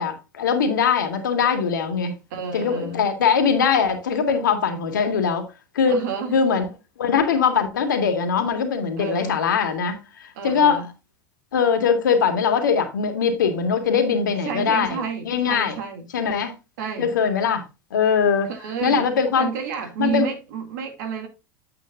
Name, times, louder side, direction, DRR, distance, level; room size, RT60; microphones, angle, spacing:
voice 1, 0.0-2.2 2.5-5.5 5.7-6.0 6.3-6.7 7.0-10.8 11.5-15.8 16.1-16.5 17.0-17.7 17.9-18.5 18.8-19.5 20.0-20.3, left 6 dB, 80° left, 2.1 m, -21 dB
voice 2, 2.3-3.1 5.9-6.3 9.0-9.4 10.4-10.9 14.2-16.0 16.8-17.1 18.5-19.1 19.4-21.3, right 6 dB, 65° right, 2.7 m, -30 dB
9.3 x 8.1 x 2.6 m
hypercardioid pair, 85°, 10 cm